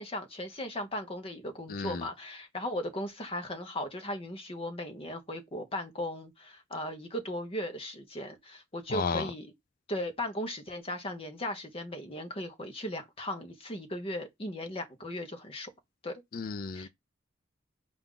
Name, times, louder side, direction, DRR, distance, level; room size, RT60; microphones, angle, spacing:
voice 1, 0.0-9.5 9.9-15.7 16.0-16.2 16.7-16.9, left 1 dB, 30° left, 0.9 m, -37 dB
voice 2, 1.7-2.1 8.9-9.3 16.3-16.9, left 5 dB, 45° left, 0.4 m, -33 dB
4.6 x 2.5 x 3.7 m
head